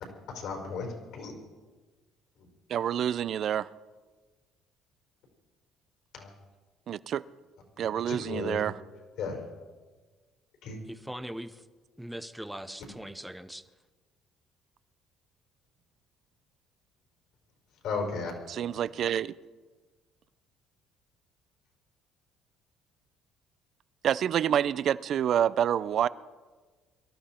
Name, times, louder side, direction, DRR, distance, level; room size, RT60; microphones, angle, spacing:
voice 1, 0.3-1.4 2.4-2.5 6.1-6.3 7.8-8.7 9.2-9.5 10.6-10.8 17.8-18.3, left 4 dB, 65° left, 1 dB, 4.7 m, -35 dB
voice 2, 2.7-3.7 6.9-7.2 7.8-8.7 18.5-19.3 24.0-26.1, right 9 dB, 50° right, 18 dB, 0.5 m, -27 dB
voice 3, 10.9-11.7 12.0-13.6, equal, 5° right, 11 dB, 0.7 m, -40 dB
23.5 x 13.0 x 4.4 m, 1.4 s
cardioid pair, 140°, 0 cm